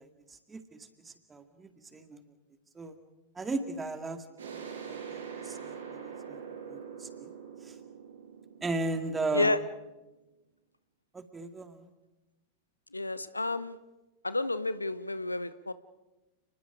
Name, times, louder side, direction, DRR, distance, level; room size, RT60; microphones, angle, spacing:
voice 1, 0.0-2.2 2.7-3.0 3.3-4.3 4.9-7.3 7.6-7.8 8.6-9.6 11.1-11.9, right 3 dB, 15° right, 8 dB, 2.2 m, -37 dB
sound 1, 4.4-9.9, right 6 dB, 70° right, 6.8 m, -44 dB
voice 2, 12.9-13.8 14.2-15.7, left 2 dB, 85° left, 15 dB, 0.8 m, -30 dB
29.5 x 20.5 x 5.1 m, 1.1 s
figure-of-eight pair, 90°, 0 cm